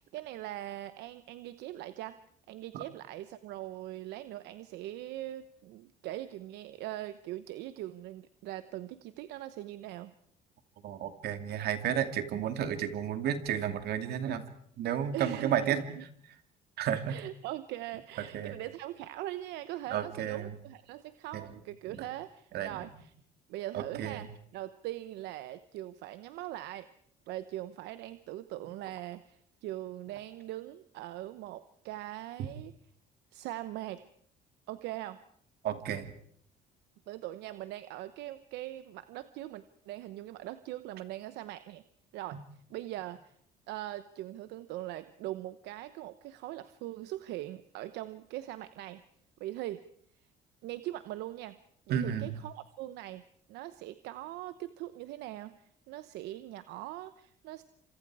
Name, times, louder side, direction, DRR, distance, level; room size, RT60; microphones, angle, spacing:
voice 1, 0.0-2.2 2.5-10.1 15.1-16.0 17.1-23.1 23.5-26.9 27.3-32.7 33.3-34.0 34.7-35.2 37.1-41.8 42.1-43.4 43.7-49.0 49.4-49.8 50.2-50.3 50.6-51.6 51.9-53.2 53.5-57.6, right 15 dB, 85° right, 13 dB, 1.0 m, -41 dB
voice 2, 10.8-14.4 14.8-16.0 16.8-17.2 18.3-18.5 19.9-20.5 21.3-21.5 22.5-22.8 23.7-24.2 35.6-36.1 51.9-52.3, right 9 dB, 70° right, 8 dB, 2.6 m, -32 dB
28.5 x 26.5 x 4.8 m, 0.65 s
cardioid pair, 110°, 17 cm